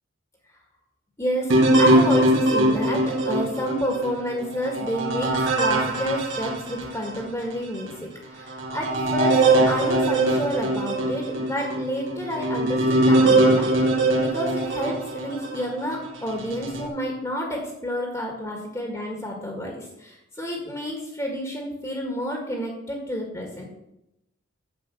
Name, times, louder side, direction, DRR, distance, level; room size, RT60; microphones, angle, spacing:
voice 1, 1.2-13.7 14.2-23.6, equal, 15° left, 0 dB, 1.9 m, -30 dB
sound 1, 1.5-7.3 7.8-7.9 8.5-15.7 16.3-16.9, right 1 dB, 85° right, 2.4 m, -22 dB
9.0 x 7.9 x 6.3 m, 0.84 s
head